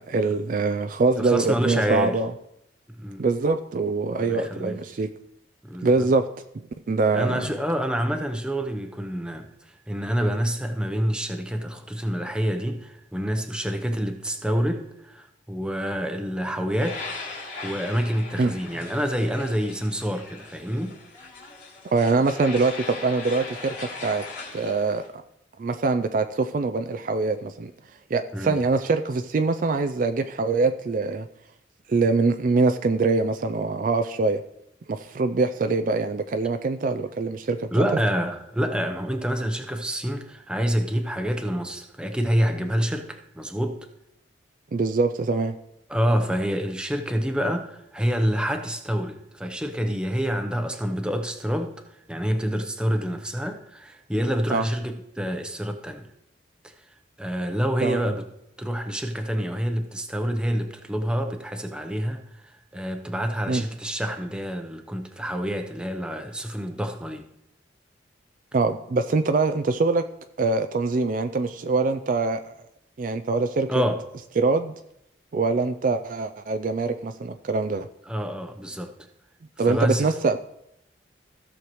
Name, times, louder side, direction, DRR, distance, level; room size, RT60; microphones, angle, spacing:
voice 1, 0.0-2.3 3.2-5.1 5.8-6.2 6.9-7.5 18.4-18.5 21.9-24.2 24.5-25.0 25.6-27.7 28.1-31.3 31.9-34.4 34.9-37.9 44.7-45.5 54.5-54.6 57.8-58.1 63.5-63.6 68.5-70.0 70.4-72.5 73.0-73.7 74.4-74.7 75.3-77.9 79.6-80.4, right 3 dB, 45° right, 9 dB, 0.4 m, -23 dB
voice 2, 1.2-2.2 3.0-3.2 4.2-4.8 5.6-6.1 7.1-9.5 9.9-17.0 17.6-21.0 28.3-28.6 37.7-43.8 45.9-51.8 52.1-56.1 57.2-58.2 58.6-62.2 62.7-67.2 73.7-74.0 78.1-78.9 79.7-80.1, equal, 5° right, 5 dB, 0.7 m, -27 dB
sound 1, 16.8-25.1, left 3 dB, 75° left, 2.9 m, -39 dB
16.0 x 6.5 x 3.1 m, 0.81 s
head